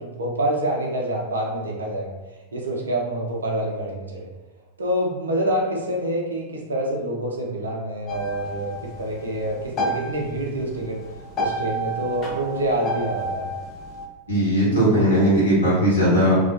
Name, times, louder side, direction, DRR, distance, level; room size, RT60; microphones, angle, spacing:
voice 1, 0.0-2.1 2.5-4.3 4.8-11.0 11.4-13.5, right 1 dB, 75° right, -1 dB, 0.5 m, -26 dB
sound 1, 8.1-14.1, right 1 dB, 30° left, 0.4 m, -31 dB
voice 2, 14.3-16.4, equal, 75° left, -7 dB, 1.1 m, -18 dB
2.3 x 2.1 x 2.4 m, 1.1 s
figure-of-eight pair, 90°, 0 cm